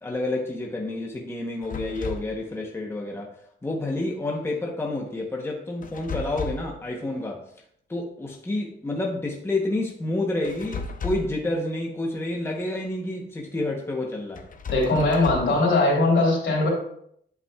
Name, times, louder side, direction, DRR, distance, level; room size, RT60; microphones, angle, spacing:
voice 1, 0.0-3.3 3.6-7.4 7.9-14.4, left 2 dB, 10° left, 0 dB, 0.8 m, -29 dB
sound 1, 1.6-2.4 5.8-6.8 10.4-11.4 14.4-15.6, left 3 dB, 45° left, 0.7 m, -34 dB
voice 2, 14.7-16.7, left 2 dB, 80° left, -3 dB, 3.1 m, -20 dB
8.3 x 8.3 x 2.3 m, 0.69 s
wide cardioid pair, 175°, 20 cm